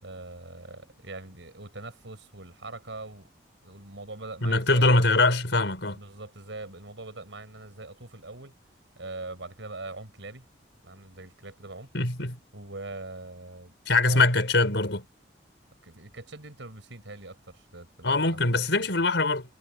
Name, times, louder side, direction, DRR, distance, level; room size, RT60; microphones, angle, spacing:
voice 1, 0.0-3.3 3.6-5.0 5.9-8.6 9.0-10.5 10.8-11.9 12.5-13.7 14.1-14.3 15.8-18.5, right 2 dB, 90° right, 5.8 m, -42 dB
voice 2, 4.4-6.0 11.9-12.4 13.9-15.0 18.0-19.4, left 2 dB, 75° left, 4.3 m, -23 dB
head